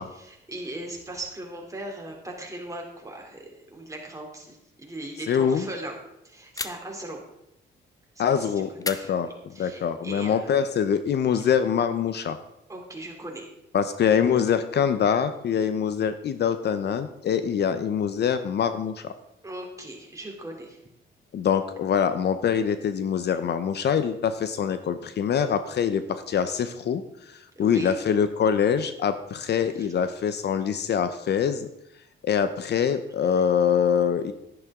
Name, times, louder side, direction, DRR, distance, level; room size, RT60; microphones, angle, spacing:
voice 1, 0.0-6.0 6.2-7.2 8.1-9.1 9.5-10.6 11.3-11.5 12.7-13.5 19.4-20.8 27.5-28.0 29.7-29.9 33.3-33.4, right 1 dB, 15° right, 0 dB, 3.1 m, -39 dB
voice 2, 5.3-5.7 8.2-9.3 9.6-12.4 13.7-19.1 21.3-31.7 32.2-34.3, left 7 dB, 60° left, 11 dB, 0.8 m, -24 dB
sound 1, 6.6-7.1 8.8-9.8, left 3 dB, 20° left, 0.7 m, -36 dB
11.0 x 10.5 x 3.7 m, 0.82 s
cardioid pair, 90°, 20 cm